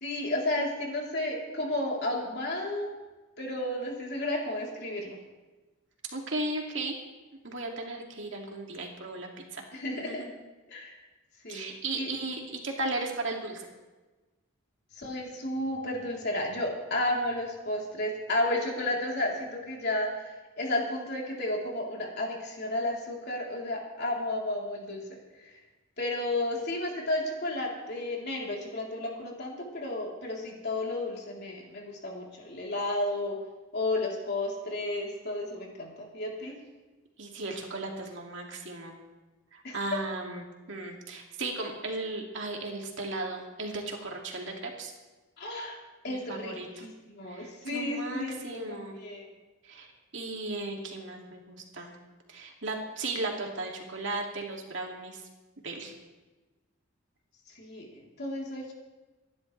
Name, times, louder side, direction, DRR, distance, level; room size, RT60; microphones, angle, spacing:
voice 1, 0.0-2.9 3.4-5.2 9.7-10.2 10.7-10.9 11.4-12.1 15.0-25.0 26.0-33.4 33.7-36.6 39.6-39.8 45.4-45.8 46.0-49.3 57.6-58.7, left 1 dB, 50° left, -2 dB, 3.7 m, -32 dB
voice 2, 6.1-6.9 7.4-9.6 9.9-10.3 11.5-13.7 37.2-38.9 39.5-44.9 46.1-46.8 47.3-49.0 49.6-49.9 50.1-51.9 52.3-55.2 55.6-55.9, right 2 dB, 60° right, 0 dB, 2.5 m, -36 dB
26.5 x 11.5 x 3.4 m, 1.2 s
head